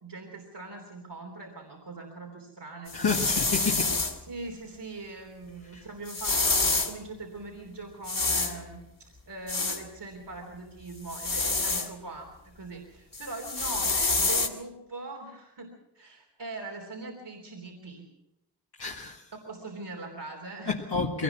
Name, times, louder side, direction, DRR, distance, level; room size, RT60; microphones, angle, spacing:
voice 1, 0.0-3.2 4.2-18.1 19.5-20.7, right 3 dB, 85° right, 0 dB, 3.4 m, -41 dB
voice 2, 2.9-4.0 5.7-5.8 18.8-19.2 20.7-21.2, left 4 dB, 70° left, -2 dB, 1.9 m, -29 dB
sound 1, 2.9-4.2 6.1-6.9 8.0-8.5 9.5-9.8 11.1-11.9 13.1-14.5, left 3 dB, 55° left, 2.7 m, -27 dB
23.0 x 19.0 x 6.1 m, 0.91 s
wide cardioid pair, 50°, 40 cm